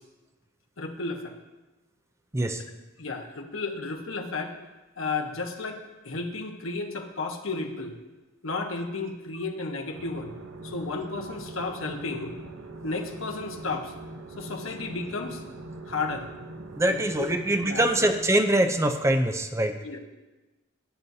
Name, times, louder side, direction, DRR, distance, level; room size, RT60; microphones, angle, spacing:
voice 1, 0.8-1.3 3.0-4.5 5.0-7.9 8.4-10.3 10.6-12.4 12.8-13.9 14.4-15.4 15.9-16.3 16.9-17.3 17.6-17.8 19.8-20.0, left 3 dB, 70° left, 3 dB, 1.2 m, -33 dB
voice 2, 2.3-2.6 16.8-19.8, right 1 dB, 15° right, 6 dB, 0.5 m, -23 dB
sound 1, 9.9-18.3, right 2 dB, 70° right, 0.8 m, -42 dB
16.0 x 9.4 x 2.7 m, 1.1 s
head